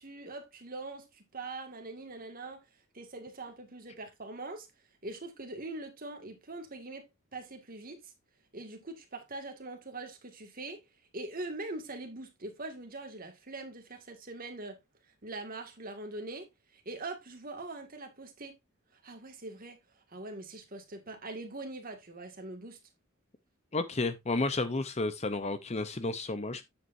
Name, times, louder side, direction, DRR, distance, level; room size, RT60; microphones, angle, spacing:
voice 1, 0.0-2.6 2.9-4.7 5.0-8.1 8.5-10.8 11.1-14.8 15.2-18.5 19.0-19.8 20.1-22.8, right 2 dB, 40° right, 2.0 m, -42 dB
voice 2, 23.7-26.7, left 2 dB, 30° left, 0.7 m, -32 dB
9.4 x 8.2 x 2.6 m
head